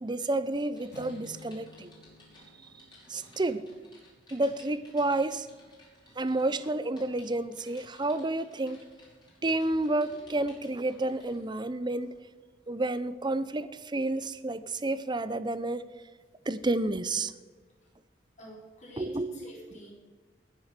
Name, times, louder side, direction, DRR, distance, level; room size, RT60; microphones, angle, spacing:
voice 1, 0.0-1.9 3.1-3.7 4.3-5.5 6.2-8.8 9.4-12.1 12.7-15.8 16.5-17.3 19.0-19.3, right 2 dB, 25° right, 14 dB, 0.7 m, -30 dB
Typing, 0.7-11.5 12.0-12.2, left 1 dB, 25° left, 5.4 m, -57 dB
sound 1, 0.9-3.7, left 2 dB, 65° left, 4.0 m, -52 dB
voice 2, 18.4-19.9, equal, 45° left, -3 dB, 4.5 m, -46 dB
20.0 x 7.6 x 6.7 m, 1.4 s
head